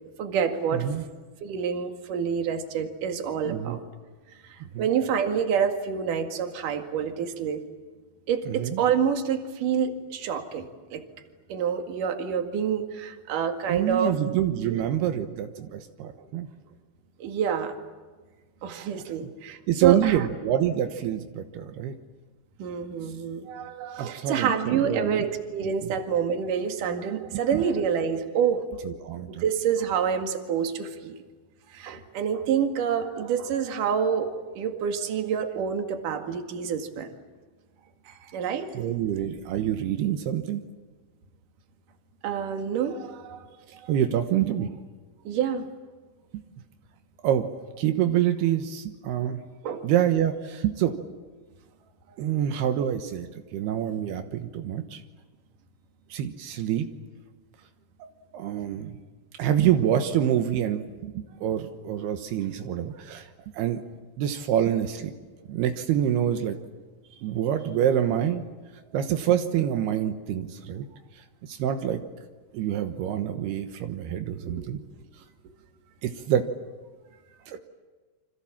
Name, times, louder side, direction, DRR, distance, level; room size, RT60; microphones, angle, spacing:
voice 1, 0.2-0.9 1.4-3.8 4.4-7.6 8.3-11.1 11.5-14.2 14.7-14.8 17.2-17.7 18.6-20.3 22.6-28.8 29.4-31.2 31.7-37.1 38.3-38.7 42.2-43.5 43.8-43.9 45.2-45.6 49.6-49.9 52.1-52.2 74.5-74.6, right 7 dB, 60° right, 5 dB, 3.4 m, -27 dB
voice 2, 0.7-1.0 3.5-3.8 4.7-4.8 8.5-8.8 13.7-16.5 18.9-19.0 19.7-21.9 24.0-25.3 25.8-25.9 27.5-27.6 28.8-29.4 38.1-38.3 38.7-40.6 43.9-44.7 46.3-46.4 47.2-47.5 47.8-49.4 49.8-50.9 52.2-55.0 56.1-56.9 58.3-58.9 59.4-63.3 63.5-63.8 64.2-65.1 65.5-66.6 67.2-68.4 68.9-70.9 71.2-72.0 72.5-74.8 76.0-76.5 77.5-77.6, right 10 dB, 85° right, 7 dB, 3.3 m, -26 dB
29.5 x 26.0 x 7.4 m, 1.4 s
omnidirectional pair, 4.5 m